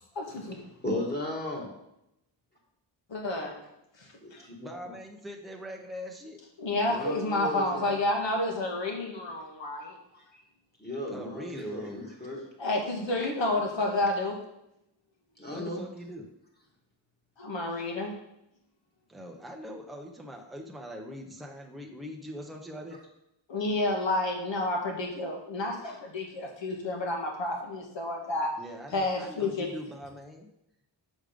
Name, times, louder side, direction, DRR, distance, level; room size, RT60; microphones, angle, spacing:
voice 1, 0.1-0.6 3.1-3.6 4.0-4.4 6.6-10.0 12.6-14.4 17.4-18.1 23.5-28.5 28.9-29.7, left 2 dB, 70° left, 0 dB, 1.7 m, -30 dB
voice 2, 0.8-1.7 4.2-4.7 6.9-7.9 9.9-10.4 10.8-12.5 13.2-13.3 15.4-15.8 25.8-26.0, left 1 dB, 20° left, -2 dB, 1.7 m, -36 dB
voice 3, 4.5-6.4 11.1-12.1 15.5-16.3 19.1-23.0 28.6-30.5, equal, ahead, 1 dB, 0.8 m, -42 dB
6.4 x 5.1 x 5.1 m, 0.82 s
wide cardioid pair, 155°, 47 cm